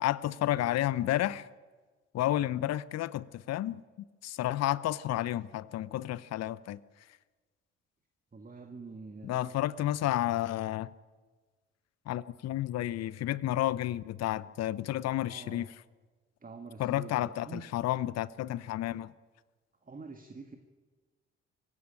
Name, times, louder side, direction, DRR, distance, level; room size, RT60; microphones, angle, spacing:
voice 1, 0.0-1.5 2.1-3.8 4.2-6.8 9.2-10.9 12.1-15.7 16.8-19.1, left 13 dB, 45° left, 0.8 m, -31 dB
voice 2, 8.3-9.5 15.2-15.7 16.4-17.7 19.8-20.6, right 4 dB, 20° right, 2.1 m, -46 dB
24.5 x 16.5 x 8.8 m
figure-of-eight pair, 45°, 37 cm